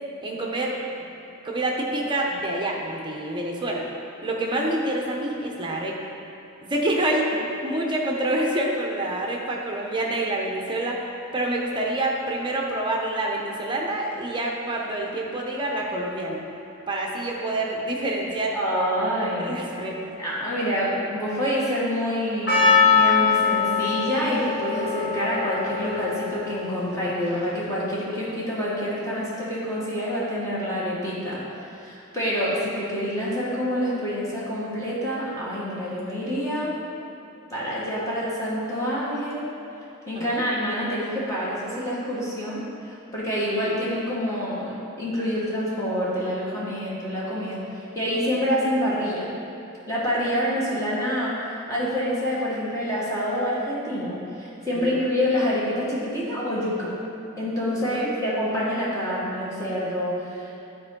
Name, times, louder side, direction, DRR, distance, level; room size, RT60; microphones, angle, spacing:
voice 1, 0.2-0.8 1.4-3.8 4.2-6.0 6.6-7.3 7.6-11.0 11.3-16.4 16.9-18.6 19.4-20.0 40.1-40.4 54.7-54.9 57.8-58.1, right 1 dB, 20° right, -1 dB, 0.8 m, -27 dB
voice 2, 18.5-19.7 20.2-31.4 31.8-36.8 37.5-39.5 40.1-47.6 47.9-49.3 49.9-56.9 57.4-60.6, equal, 15° left, -8 dB, 1.4 m, -27 dB
Percussion, 22.5-27.7, left 5 dB, 50° left, 1.6 m, -23 dB
10.5 x 4.5 x 3.8 m, 2.9 s
head